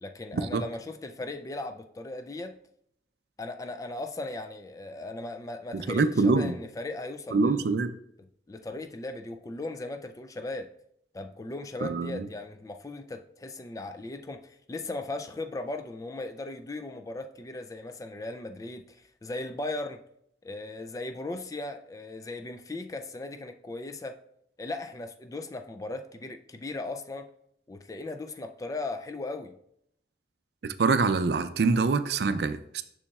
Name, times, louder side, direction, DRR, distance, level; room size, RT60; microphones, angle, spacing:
voice 1, 0.0-2.6 3.4-7.7 8.5-10.7 11.1-20.0 20.4-24.2 24.6-27.3 27.7-29.6, left 2 dB, 20° left, 0.3 m, -37 dB
voice 2, 5.7-6.5 7.3-7.9 11.8-12.3 30.6-32.8, right 4 dB, 65° right, 0.4 m, -25 dB
6.9 x 6.2 x 2.4 m
head